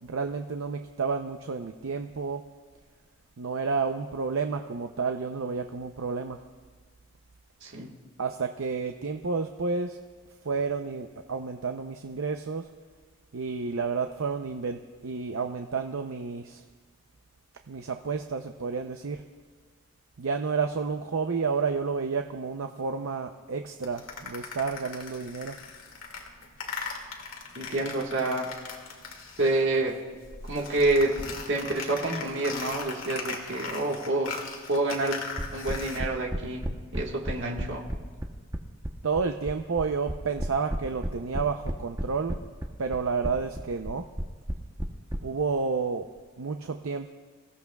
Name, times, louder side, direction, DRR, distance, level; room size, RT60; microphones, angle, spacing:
voice 1, 0.0-2.4 3.4-6.4 8.2-10.0 10.4-12.7 13.3-16.6 17.7-19.2 20.2-25.6 39.0-42.4 42.8-44.0 45.2-46.1 46.4-47.1, right 4 dB, 80° right, 5 dB, 0.6 m, -30 dB
voice 2, 7.6-7.9 27.5-28.5 29.4-30.0 30.5-31.2 31.5-34.4 34.7-35.2 35.5-36.7 36.9-37.9, right 2 dB, 60° right, 0 dB, 1.6 m, -28 dB
sound 1, 23.8-29.9 30.1-36.0, left 4 dB, 75° left, 2.2 m, -39 dB
sound 2, 35.4-45.2, equal, 15° right, 0.9 m, -32 dB
26.5 x 15.5 x 2.3 m, 1.5 s
head